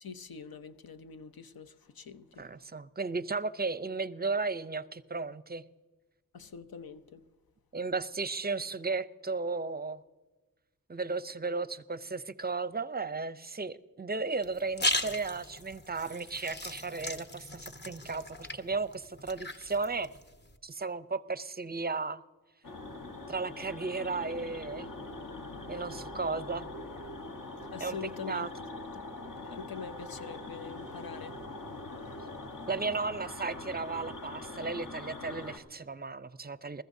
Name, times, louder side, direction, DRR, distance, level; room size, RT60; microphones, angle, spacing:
voice 1, 0.0-2.5 6.3-7.2 27.7-28.5 28.9-31.4, left 5 dB, 85° left, 0.7 m, -44 dB
voice 2, 2.4-5.6 7.7-10.0 10.9-20.1 20.6-22.2 23.3-24.9 25.7-26.7 27.8-28.0 28.3-28.5 32.7-36.8, right 4 dB, 30° right, 0.5 m, -35 dB
sound 1, 14.4-20.6, left 1 dB, 30° left, 1.0 m, -37 dB
sound 2, 22.6-35.6, left 2 dB, 65° left, 1.2 m, -43 dB
21.0 x 14.0 x 2.7 m
wide cardioid pair, 60°, 35 cm